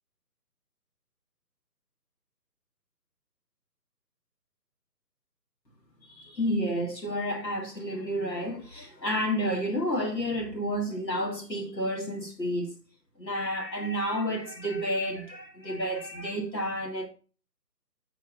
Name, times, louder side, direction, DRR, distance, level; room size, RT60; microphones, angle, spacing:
voice 1, 6.1-12.7 13.2-17.1, equal, 85° left, 2.3 m, -30 dB
7.6 x 6.4 x 3.9 m
figure-of-eight pair, 150°, 49 cm